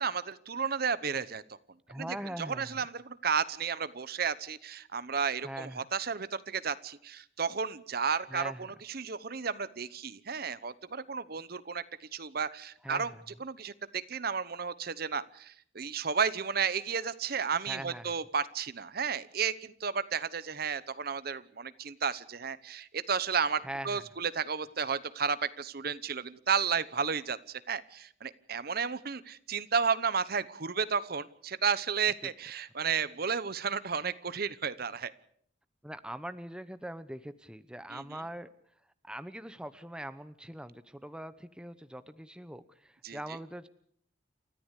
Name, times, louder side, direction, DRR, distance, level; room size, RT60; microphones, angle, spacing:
voice 1, 0.0-1.4 2.0-13.1 13.4-35.1 37.9-38.2 43.0-43.2, right 6 dB, 55° right, 16 dB, 0.9 m, -33 dB
voice 2, 1.9-2.8 5.4-5.8 8.3-8.7 12.8-13.2 17.6-18.2 23.6-24.0 35.8-38.5 39.0-43.7, right 1 dB, 5° right, 12 dB, 0.9 m, -42 dB
29.0 x 14.0 x 8.3 m, 0.64 s
head